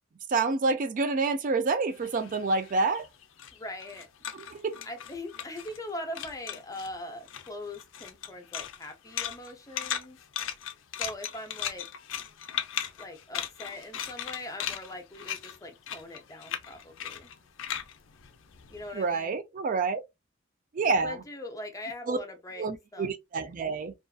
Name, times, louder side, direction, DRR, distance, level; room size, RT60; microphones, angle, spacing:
voice 1, 0.3-3.1 4.5-4.8 18.9-20.0 20.7-21.2 22.1-22.2 22.6-23.9, right 3 dB, 40° right, 0.4 m, -28 dB
sound 1, 1.9-5.9 6.1-6.9 7.2-19.1, left 9 dB, 75° left, 0.4 m, -37 dB
voice 2, 3.5-4.1 4.8-10.2 11.0-11.9 13.0-17.3 18.7-19.4 21.0-22.7 22.9-23.1, left 1 dB, 15° left, 0.6 m, -41 dB
2.5 x 2.3 x 2.2 m
head